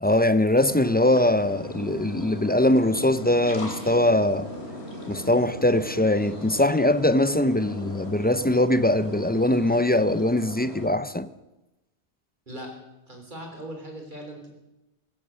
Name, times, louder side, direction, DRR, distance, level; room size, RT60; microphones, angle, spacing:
voice 1, 0.0-4.5 5.1-11.3, left 1 dB, 15° left, 0.4 m, -22 dB
sound 1, 0.6-10.9, left 1 dB, 70° left, 3.4 m, -38 dB
voice 2, 13.1-14.5, right 1 dB, 45° right, 4.0 m, -39 dB
16.0 x 13.5 x 6.4 m
omnidirectional pair, 1.1 m